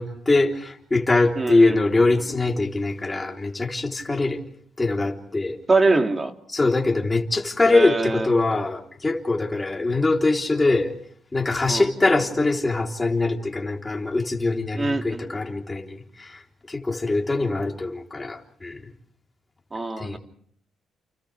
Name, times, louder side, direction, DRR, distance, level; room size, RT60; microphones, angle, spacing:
voice 1, 0.0-4.4 4.8-5.6 6.5-10.9 11.3-16.4 16.7-18.9 20.0-20.2, left 3 dB, 20° left, 3.7 m, -23 dB
voice 2, 1.4-2.0 5.7-6.3 7.7-8.3 11.7-11.9 14.8-15.3 19.7-20.2, right 3 dB, 25° right, 2.6 m, -23 dB
30.0 x 29.0 x 3.5 m
cardioid pair, 90°, 0 cm